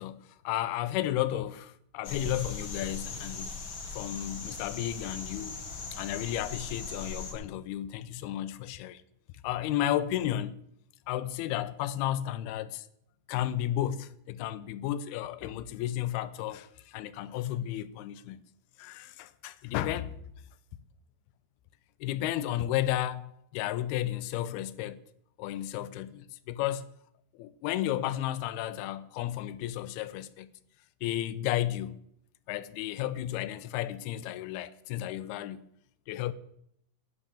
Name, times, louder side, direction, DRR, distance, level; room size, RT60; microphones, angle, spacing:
voice 1, 0.0-3.5 3.9-5.6 5.9-9.0 9.4-10.6 11.1-12.9 13.3-18.4 18.8-20.2 22.0-25.0 25.4-26.9 27.3-30.5 31.0-32.0 32.5-35.7 36.1-36.3, left 12 dB, 85° left, 2.6 m, -33 dB
sound 1, 2.0-7.3, left 4 dB, 40° left, 1.6 m, -39 dB
11.0 x 9.1 x 8.6 m
omnidirectional pair, 4.6 m